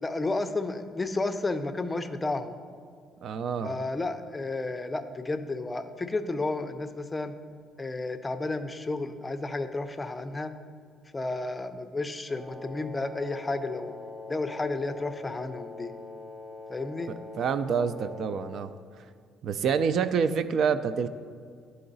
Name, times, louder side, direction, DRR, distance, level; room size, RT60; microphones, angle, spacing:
voice 1, 0.0-2.5 3.6-7.4 7.8-10.5 11.1-13.9 14.3-15.9 16.7-17.1, left 2 dB, 15° left, 8 dB, 0.4 m, -32 dB
voice 2, 3.2-3.8 17.4-18.7 19.4-21.1, right 6 dB, 60° right, 12 dB, 0.3 m, -27 dB
Wind instrument woodwind instrument, 12.3-18.7, left 3 dB, 15° right, 1.0 m, -43 dB
11.5 x 3.9 x 4.0 m, 2.1 s
cardioid pair, 125°, 0 cm